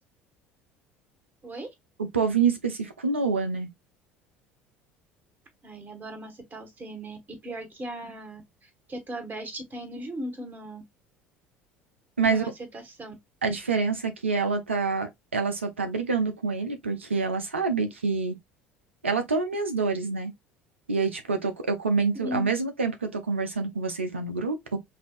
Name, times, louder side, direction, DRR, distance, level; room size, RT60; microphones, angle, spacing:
voice 1, 2.1-3.7 12.2-12.5 13.4-18.4 19.0-20.3 20.9-24.8, right 4 dB, 85° right, 0.8 m, -27 dB
voice 2, 5.6-7.2 7.4-10.8 12.2-13.1 22.2-22.5, right 1 dB, 30° right, 2.0 m, -38 dB
5.4 x 2.8 x 2.5 m
figure-of-eight pair, 65°, 6 cm